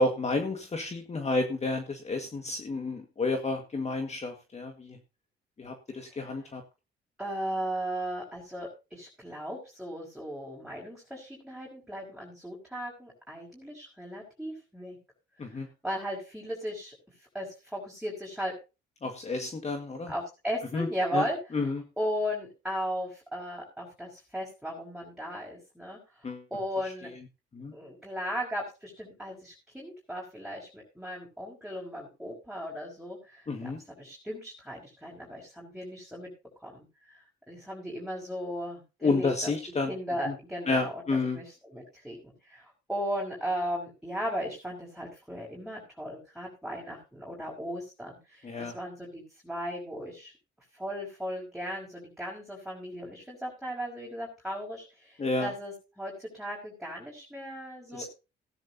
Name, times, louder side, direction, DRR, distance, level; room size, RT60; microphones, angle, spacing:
voice 1, 0.0-5.0 5.6-6.6 15.4-15.7 19.0-20.1 20.7-20.9 21.1-21.2 21.5-21.8 26.2-26.4 27.5-27.7 33.5-33.8 39.0-39.9 40.3-40.4 40.7-41.4 48.4-48.8 55.2-55.5 57.9-58.0, left 3 dB, 35° left, 5 dB, 1.8 m, -30 dB
voice 2, 6.1-6.5 7.2-15.0 15.5-16.9 17.3-18.6 20.1-21.7 22.0-26.0 26.5-27.1 27.7-33.7 34.0-36.3 36.6-36.8 37.1-37.2 37.5-39.5 39.9-50.3 50.7-58.1, equal, ahead, -3 dB, 5.8 m, -36 dB
16.0 x 11.0 x 2.8 m, 0.29 s
cardioid pair, 90°, 20 cm